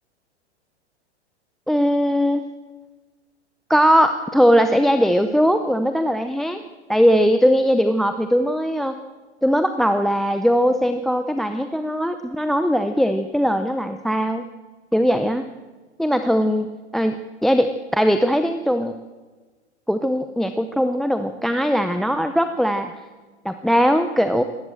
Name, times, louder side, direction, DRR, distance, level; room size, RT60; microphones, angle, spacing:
voice 1, 1.7-2.4 3.7-6.6 6.9-9.0 9.4-14.4 14.9-15.4 16.0-16.7 16.9-17.2 17.4-19.0 19.9-22.9 23.4-24.4, equal, ahead, 9 dB, 0.6 m, -19 dB
19.0 x 18.0 x 7.8 m, 1.3 s
hypercardioid pair, 120°, 35 cm